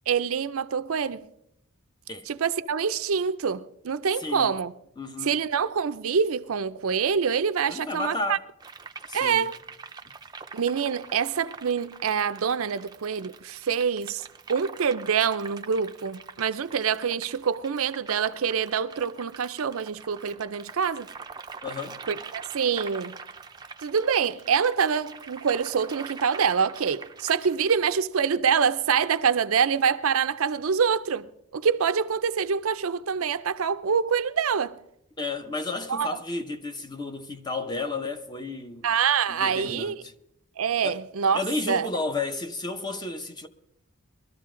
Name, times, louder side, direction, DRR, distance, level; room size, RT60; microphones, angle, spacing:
voice 1, 0.1-1.3 2.3-4.7 5.2-8.4 9.1-9.6 10.5-21.1 22.1-23.1 23.8-34.8 35.9-36.2 38.8-40.0 40.6-41.9, right 6 dB, 70° right, 0.5 m, -26 dB
voice 2, 4.2-4.6 5.0-5.4 7.7-8.5 9.1-9.5 21.6-22.0 35.2-38.9 39.3-40.1 40.8-41.0 41.3-43.5, left 3 dB, 20° left, 0.8 m, -32 dB
sound 1, 8.6-27.8, right 5 dB, 20° right, 0.5 m, -44 dB
22.0 x 13.0 x 3.8 m
head